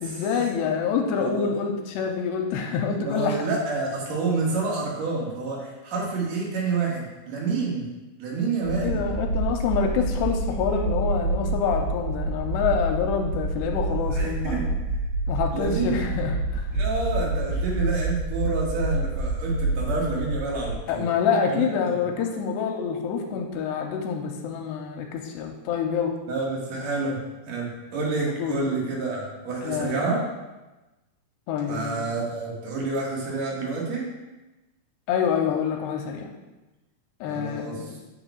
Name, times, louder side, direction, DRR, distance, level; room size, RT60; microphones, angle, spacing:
voice 1, 0.0-3.4 8.8-14.8 15.3-16.8 20.9-26.2 28.4-28.6 29.6-30.1 31.5-32.1 35.1-36.3 37.2-38.0, left 6 dB, 85° left, 3 dB, 2.6 m, -27 dB
voice 2, 1.2-1.5 3.0-7.9 8.2-9.0 14.1-14.7 15.5-16.0 16.7-21.1 21.5-21.7 22.0-22.1 26.3-27.2 27.5-30.2 31.7-34.1 37.3-37.9, right 3 dB, 55° right, -3 dB, 2.2 m, -28 dB
sound 1, 8.6-20.7, right 2 dB, 75° right, 3.0 m, -28 dB
8.8 x 8.5 x 2.3 m, 1.1 s
omnidirectional pair, 4.9 m